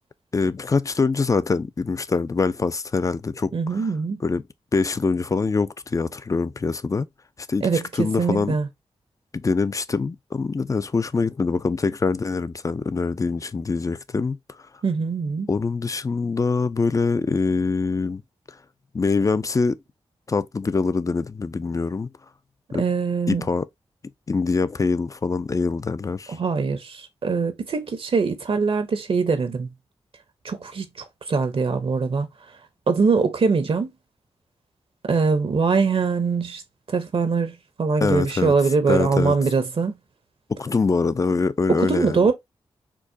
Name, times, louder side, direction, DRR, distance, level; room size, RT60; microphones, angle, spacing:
voice 1, 0.3-3.5 4.2-4.4 4.7-7.1 7.5-8.6 9.3-14.4 15.5-18.2 18.9-19.8 20.3-22.1 22.7-22.8 23.3-23.7 24.3-26.4 38.0-38.5 38.9-39.3 40.5-42.3, left 4 dB, 30° left, 0.4 m, -24 dB
voice 2, 3.5-4.2 7.6-8.7 14.8-15.5 22.8-23.5 26.3-29.7 30.4-32.3 32.9-33.9 35.0-36.6 36.9-40.0 41.7-42.3, right 5 dB, 55° right, 0.7 m, -22 dB
4.5 x 2.1 x 2.5 m
cardioid pair, 50°, 11 cm